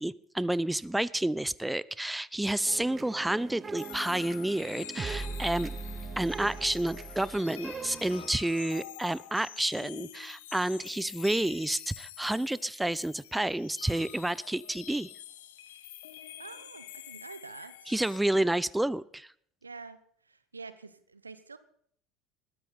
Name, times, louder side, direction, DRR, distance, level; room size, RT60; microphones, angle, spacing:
voice 1, 0.0-5.7 6.2-15.1 17.9-19.3, right 1 dB, 5° right, 20 dB, 0.5 m, -30 dB
sound 1, 2.7-8.3, right 4 dB, 25° right, 1.0 m, -40 dB
sound 2, 3.7-18.2, left 12 dB, 70° left, 1.2 m, -47 dB
voice 2, 16.4-17.9 19.6-21.6, right 4 dB, 90° right, 13 dB, 0.9 m, -47 dB
20.5 x 13.5 x 4.1 m, 0.64 s
figure-of-eight pair, 65°, 0 cm